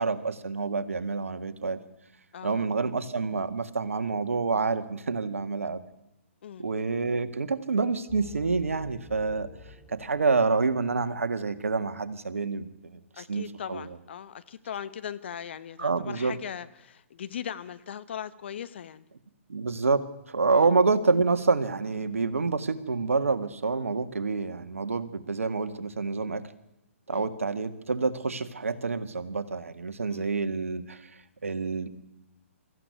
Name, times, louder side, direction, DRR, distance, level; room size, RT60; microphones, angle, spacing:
voice 1, 0.0-1.8 2.4-5.9 6.6-9.5 9.9-13.0 13.3-13.8 15.8-16.4 19.5-26.4 27.1-31.0 31.4-31.9, right 4 dB, 75° right, 11 dB, 1.9 m, -27 dB
voice 2, 2.3-2.7 6.4-6.7 13.1-19.0 20.5-20.7 27.1-27.3 30.1-30.3, left 9 dB, 55° left, 13 dB, 1.3 m, -39 dB
sound 1, 8.1-11.5, left 6 dB, 15° left, 2.9 m, -49 dB
24.0 x 14.5 x 9.6 m, 0.89 s
figure-of-eight pair, 130°, 8 cm